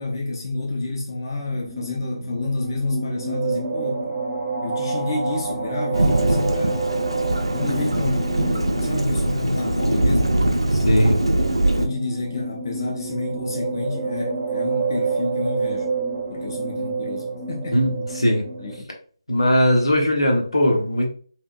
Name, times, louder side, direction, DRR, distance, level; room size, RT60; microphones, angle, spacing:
voice 1, 0.0-4.2 4.6-7.0 7.5-10.6 11.8-15.9 16.3-17.8 18.6-18.9, left 2 dB, 45° left, 0.5 m, -29 dB
sound 1, 1.4-18.8, right 4 dB, 15° right, 0.5 m, -29 dB
Thunderstorm / Rain, 5.9-11.9, right 1 dB, 90° right, 0.3 m, -22 dB
voice 2, 10.7-11.2 17.7-18.5 19.3-21.1, equal, 80° left, 0.8 m, -19 dB
2.8 x 2.1 x 2.3 m
figure-of-eight pair, 155°, 3 cm